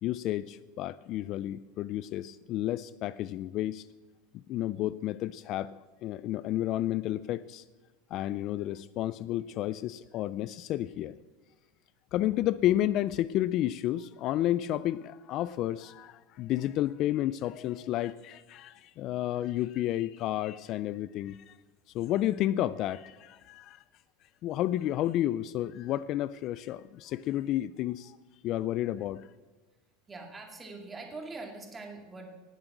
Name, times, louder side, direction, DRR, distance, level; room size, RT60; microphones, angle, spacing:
voice 1, 0.0-3.9 4.3-7.6 8.1-11.1 12.1-21.6 21.9-23.8 24.4-28.2 28.4-29.3, left 13 dB, 40° left, 17 dB, 0.3 m, -31 dB
voice 2, 30.1-32.3, right 3 dB, 15° right, 2 dB, 2.2 m, -43 dB
18.0 x 7.6 x 6.1 m, 1.3 s
supercardioid pair, 145°, 0 cm